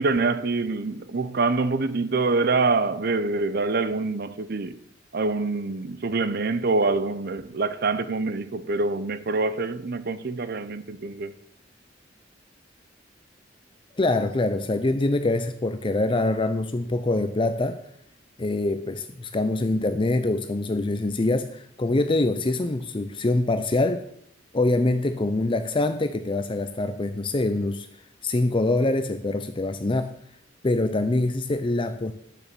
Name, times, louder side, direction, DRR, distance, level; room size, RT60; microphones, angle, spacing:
voice 1, 0.0-4.8 5.1-11.3, right 3 dB, 55° right, 0.7 m, -25 dB
voice 2, 14.0-17.8 18.4-24.1 24.5-27.9 28.2-30.1 30.6-32.1, left 2 dB, 30° left, 0.6 m, -24 dB
10.0 x 7.0 x 6.9 m
head